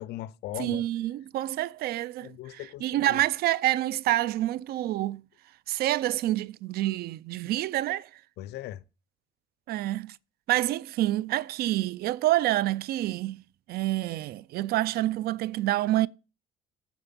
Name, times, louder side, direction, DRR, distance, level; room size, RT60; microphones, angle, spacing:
voice 1, 0.0-0.8 2.2-3.2 8.4-8.8, left 14 dB, 75° left, 0.6 m, -38 dB
voice 2, 0.6-5.2 5.7-8.1 9.7-10.2 10.5-13.4 13.7-16.1, right 15 dB, 65° right, 0.4 m, -27 dB
9.0 x 4.3 x 7.0 m
cardioid pair, 110°, 17 cm